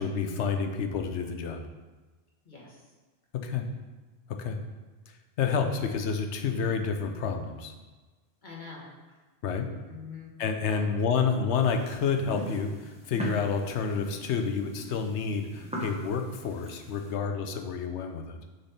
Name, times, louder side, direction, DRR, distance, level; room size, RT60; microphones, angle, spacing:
voice 1, 0.0-1.6 3.3-3.6 4.4-4.6 5.4-7.7 9.4-9.7 10.4-18.4, left 5 dB, 80° left, 6 dB, 1.0 m, -29 dB
voice 2, 2.4-2.8 8.4-9.2 9.9-10.3 10.6-10.8, left 5 dB, 45° left, -4 dB, 1.6 m, -45 dB
sound 1, 11.5-17.1, right 2 dB, 5° right, 1.0 m, -41 dB
6.5 x 4.2 x 4.1 m, 1.3 s
omnidirectional pair, 1.2 m